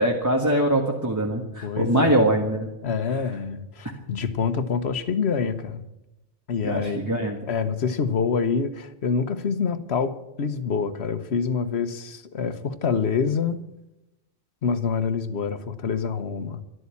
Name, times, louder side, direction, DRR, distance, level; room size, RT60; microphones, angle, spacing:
voice 1, 0.0-2.7 6.6-7.4, right 1 dB, 15° right, 1.6 m, -22 dB
voice 2, 1.6-2.3 2.8-5.8 6.5-7.0 7.5-13.6 14.6-16.6, left 6 dB, 65° left, 1.2 m, -26 dB
12.5 x 12.5 x 8.4 m
omnidirectional pair, 1.2 m